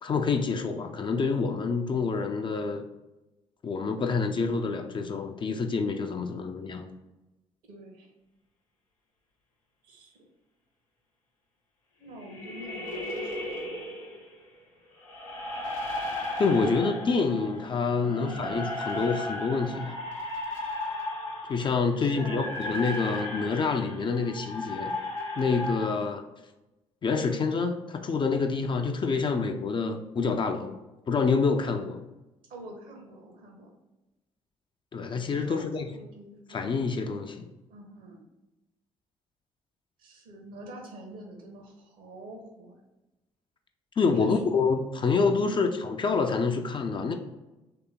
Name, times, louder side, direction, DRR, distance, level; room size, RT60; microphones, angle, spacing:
voice 1, 0.0-2.9 3.6-6.9 16.4-19.9 21.5-24.9 25.4-26.2 27.0-30.8 31.1-32.0 34.9-35.9 36.5-37.5 44.0-47.1, left 4 dB, 30° left, 5 dB, 0.4 m, -27 dB
voice 2, 7.7-8.1 9.8-10.2 12.0-13.9 18.0-18.6 22.0-23.3 25.7-26.1 32.5-33.7 35.3-36.8 37.7-38.2 40.0-42.8 44.1-44.4 45.4-45.8, right 1 dB, 60° right, 2 dB, 0.9 m, -46 dB
sound 1, 12.2-14.3 15.0-25.9, left 1 dB, 85° left, 0.7 m, -35 dB
3.3 x 2.9 x 3.6 m, 1.0 s
figure-of-eight pair, 45°, 16 cm